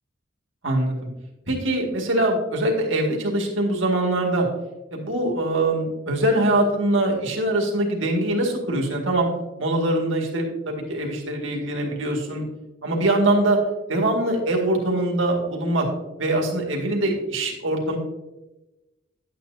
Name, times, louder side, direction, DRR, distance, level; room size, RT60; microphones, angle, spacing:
voice 1, 0.6-1.0 1.5-4.5 4.9-9.3 9.6-12.4 12.8-13.6 13.9-15.9 16.2-18.0, right 1 dB, 70° right, 0 dB, 2.1 m, -23 dB
11.0 x 8.8 x 2.8 m, 1.0 s
head